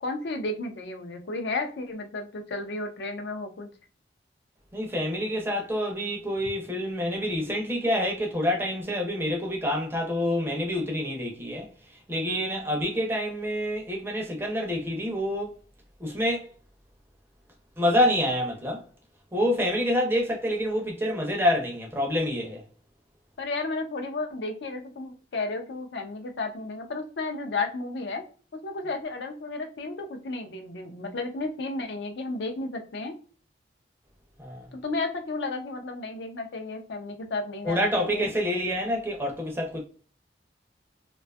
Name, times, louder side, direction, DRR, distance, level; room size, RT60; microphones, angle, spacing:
voice 1, 0.0-3.7 23.4-28.2 28.6-33.1 34.7-38.3, left 3 dB, 75° left, 0.5 m, -33 dB
voice 2, 4.7-11.7 12.1-15.5 16.0-16.5 17.8-18.8 19.3-22.6 34.4-34.7 37.6-39.8, equal, 10° right, 0.4 m, -27 dB
2.5 x 2.3 x 2.2 m
head